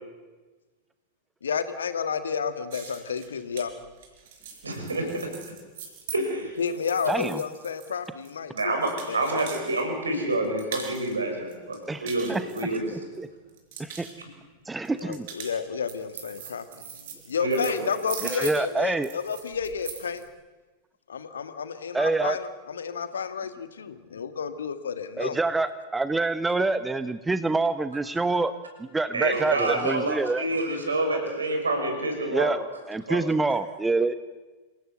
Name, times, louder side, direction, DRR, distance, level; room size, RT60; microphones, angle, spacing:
voice 1, 1.4-3.7 6.6-8.7 9.1-9.5 15.0-16.6 17.3-20.2 21.1-25.4, left 6 dB, 70° left, 11 dB, 1.6 m, -31 dB
sound 1, 2.7-9.8 10.1-11.1 11.5-13.2 13.5-14.1 14.8-20.2, right 7 dB, 55° right, 5.2 m, -41 dB
voice 2, 4.6-5.1 6.1-6.6 8.5-12.9 17.4-17.9 29.1-32.6 33.1-33.2, right 2 dB, 75° right, 3 dB, 6.3 m, -27 dB
voice 3, 7.1-7.4 11.9-12.4 12.9-13.3 13.8-14.1 14.7-15.3 18.2-19.1 21.9-22.4 25.2-28.5 28.8-30.4 32.2-32.6 32.9-34.1, right 3 dB, 10° right, 13 dB, 0.9 m, -26 dB
27.0 x 17.5 x 7.9 m, 1.3 s
figure-of-eight pair, 90°, 0 cm